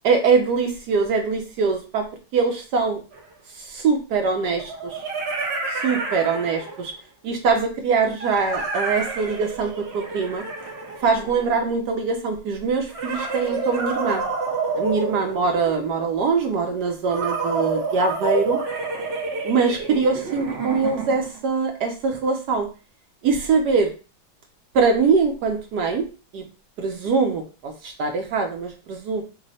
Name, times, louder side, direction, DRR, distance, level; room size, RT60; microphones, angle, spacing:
voice 1, 0.0-2.1 2.3-3.0 3.6-5.0 5.7-6.9 7.2-10.4 11.0-14.2 14.8-18.6 19.4-22.7 23.2-23.9 24.7-26.1 26.3-26.4 26.8-29.2, right 4 dB, 70° right, 4 dB, 1.1 m, -23 dB
sound 1, 3.1-3.2 4.6-7.0 8.2-11.7 12.9-15.9 17.1-21.4, right 3 dB, 55° right, 0.7 m, -29 dB
4.6 x 2.1 x 3.9 m, 0.34 s
omnidirectional pair, 2.1 m